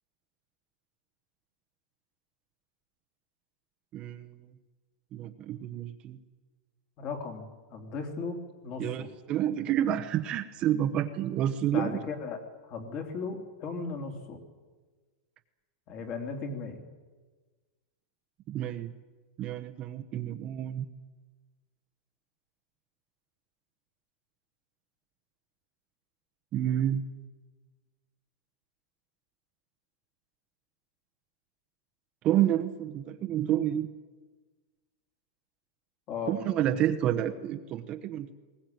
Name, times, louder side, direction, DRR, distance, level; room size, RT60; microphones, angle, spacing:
voice 1, 3.9-4.4 5.1-6.2 8.8-12.0 18.5-18.9 19.4-20.9 26.5-27.0 32.2-33.9 36.3-38.3, right 11 dB, 25° right, 6 dB, 1.0 m, -29 dB
voice 2, 7.0-7.4 7.7-8.4 8.6-9.1 11.7-12.4 12.7-14.4 15.9-16.8 36.1-36.3, left 4 dB, 30° left, 5 dB, 3.2 m, -36 dB
21.0 x 19.0 x 9.4 m, 1.3 s
supercardioid pair, 165°, 4 cm